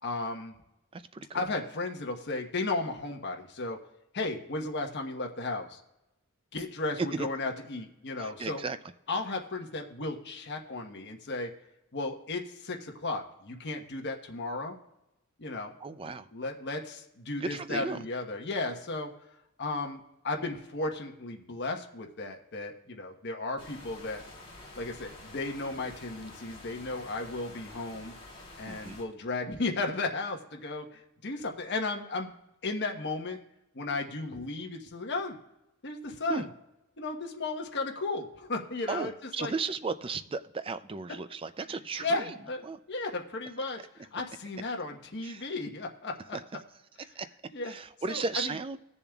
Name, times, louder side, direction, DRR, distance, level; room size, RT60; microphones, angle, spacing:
voice 1, 0.0-0.6 1.3-3.8 4.1-5.8 6.5-8.6 9.1-11.5 11.9-14.8 15.4-15.7 16.1-19.1 19.6-24.2 24.8-28.1 28.6-32.3 32.6-33.4 33.7-35.4 35.8-36.5 37.0-39.1 39.4-39.5 42.0-42.6 42.9-46.4 47.5-47.8 48.1-48.5, left 3 dB, 50° left, 2 dB, 1.2 m, -34 dB
voice 2, 0.9-1.4 7.1-7.3 8.2-8.8 15.8-16.3 17.4-18.1 28.6-29.0 36.3-36.4 38.9-42.3 42.6-42.8 45.2-45.5 46.3-46.4 47.2-47.3 47.6-48.8, right 4 dB, 25° right, 12 dB, 0.4 m, -35 dB
sound 1, 23.6-29.0, left 2 dB, 25° left, 3.0 m, -49 dB
19.5 x 7.0 x 2.3 m, 0.91 s
head